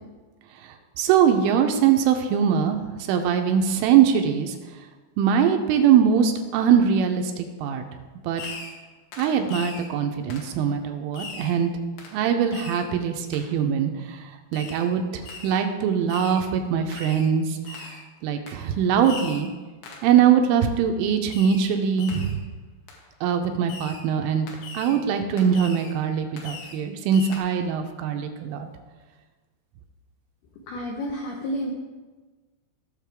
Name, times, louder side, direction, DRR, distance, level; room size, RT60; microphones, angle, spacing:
voice 1, 1.0-4.6 5.2-7.9 8.2-8.4 9.2-11.7 12.1-19.5 20.0-22.4 23.2-24.5 24.7-28.7, right 8 dB, 85° right, 5 dB, 3.1 m, -22 dB
Fireworks, 8.4-8.9 9.1-9.9 10.3-10.5 11.1-11.6 12.0-12.2 12.5-12.9 13.3-13.5 14.5-14.9 15.2-15.6 16.1-16.4 16.9-17.3 17.7-18.0 18.5-18.6 19.0-19.5 19.8-20.1 21.3-21.7 22.0-22.4 22.9-23.0 23.7-24.0 24.5-25.0 25.4-26.0 26.4-26.8 27.1-27.4, left 4 dB, 70° left, 3.6 m, -40 dB
voice 2, 30.7-31.7, equal, 85° left, -1 dB, 2.2 m, -30 dB
17.5 x 6.5 x 3.5 m, 1.3 s
omnidirectional pair, 5.9 m